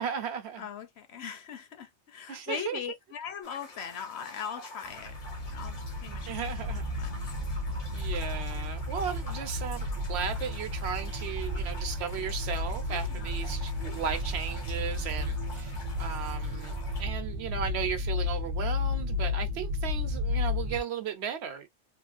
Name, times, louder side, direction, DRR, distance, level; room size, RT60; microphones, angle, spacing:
voice 1, 0.0-0.7 2.3-2.8 6.2-6.8 7.9-21.7, right 7 dB, 70° right, 0.9 m, -36 dB
voice 2, 0.6-5.2 5.5-5.8 6.0-6.3 7.0-7.2 12.9-13.3, left 8 dB, 70° left, 0.9 m, -40 dB
sound 1, 3.4-17.0, left 2 dB, 85° left, 1.3 m, -48 dB
sound 2, 4.9-20.8, left 2 dB, 45° right, 0.5 m, -33 dB
3.0 x 2.3 x 2.4 m
omnidirectional pair, 1.2 m